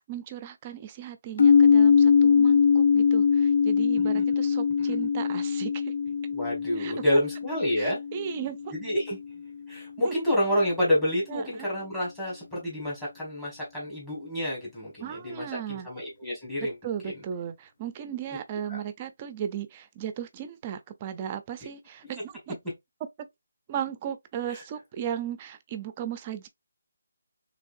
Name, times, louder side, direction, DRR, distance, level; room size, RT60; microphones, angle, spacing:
voice 1, 0.0-5.9 6.8-6.9 7.8-8.7 10.0-10.1 11.3-11.7 15.0-15.9 16.6-22.6 23.2-23.3 23.7-26.5, right 9 dB, 25° right, 0.4 m, -36 dB
sound 1, 1.4-9.2, left 6 dB, 60° left, 0.3 m, -22 dB
voice 2, 6.3-8.0 8.7-9.2 9.7-16.7 17.0-17.1 18.7-18.8 24.5-24.6, equal, 10° left, 1.6 m, -28 dB
3.7 x 3.3 x 2.5 m
figure-of-eight pair, 160°, 0 cm